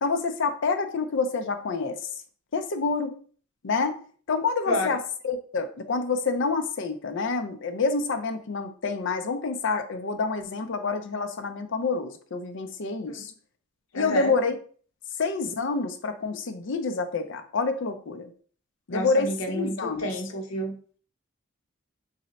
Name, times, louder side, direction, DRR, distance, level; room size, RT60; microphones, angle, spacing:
voice 1, 0.0-2.0 2.5-3.1 3.6-4.0 4.3-13.3 13.9-14.6 15.2-18.3 18.9-20.1, left 4 dB, 60° left, 7 dB, 0.5 m, -27 dB
voice 2, 13.9-14.3 18.9-20.7, equal, 85° left, 3 dB, 0.9 m, -30 dB
3.1 x 2.7 x 3.9 m, 0.43 s
head